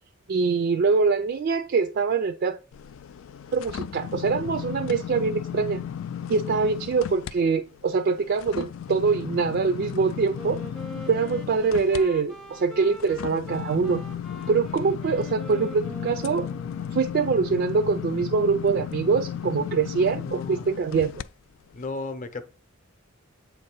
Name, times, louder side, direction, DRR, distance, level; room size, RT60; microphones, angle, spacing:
voice 1, 0.3-2.6 3.5-5.8 6.3-10.6 11.1-14.0 14.5-16.5 16.9-21.1, right 5 dB, 50° right, 0.3 m, -24 dB
sound 1, 2.7-7.3 7.7-21.3 21.7-21.9, left 8 dB, 70° left, 0.3 m, -35 dB
Wind instrument woodwind instrument, 10.3-17.0, equal, ahead, 0.5 m, -42 dB
voice 2, 19.8-20.7 21.7-22.4, left 3 dB, 40° left, 0.7 m, -35 dB
7.9 x 2.7 x 5.3 m
head